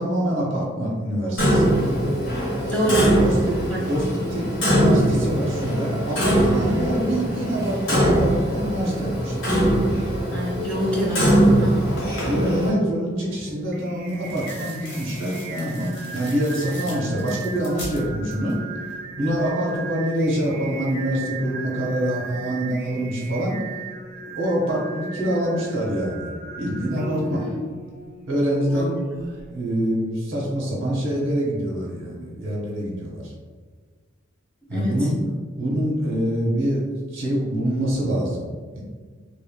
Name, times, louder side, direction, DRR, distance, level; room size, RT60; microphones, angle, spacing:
voice 1, 0.0-1.7 2.8-3.6 3.9-9.5 12.2-18.6 19.2-23.5 24.2-26.3 26.6-27.4 28.3-28.9 29.5-33.3 34.7-35.2 35.6-36.8 37.1-38.4 38.7-38.8, equal, 70° right, -3 dB, 0.8 m, -25 dB
Clock, 1.4-12.7, equal, 85° left, 1.0 m, -21 dB
voice 2, 2.6-3.2 3.7-4.2 10.3-11.9 27.2-27.7 28.7-29.2 34.7-35.1, right 1 dB, 5° left, -6 dB, 0.7 m, -26 dB
sound 1, 11.3-12.7 14.0-18.6 18.9-19.5, left 1 dB, 60° left, 0.8 m, -39 dB
Singing, 13.2-29.5, right 3 dB, 50° right, 0.4 m, -38 dB
3.2 x 2.5 x 2.2 m, 1.5 s
head